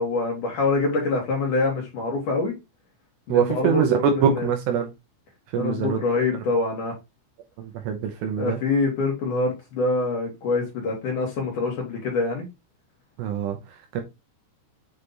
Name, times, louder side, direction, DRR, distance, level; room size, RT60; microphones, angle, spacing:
voice 1, 0.0-2.5 3.3-4.0 4.4-4.5 5.6-6.9 8.4-12.5, left 3 dB, 60° left, 2.3 m, -25 dB
voice 2, 3.3-4.9 5.5-6.0 6.3-6.4 7.6-8.6 13.2-14.0, right 7 dB, 80° right, 2.6 m, -24 dB
8.1 x 3.3 x 4.0 m
omnidirectional pair, 5.9 m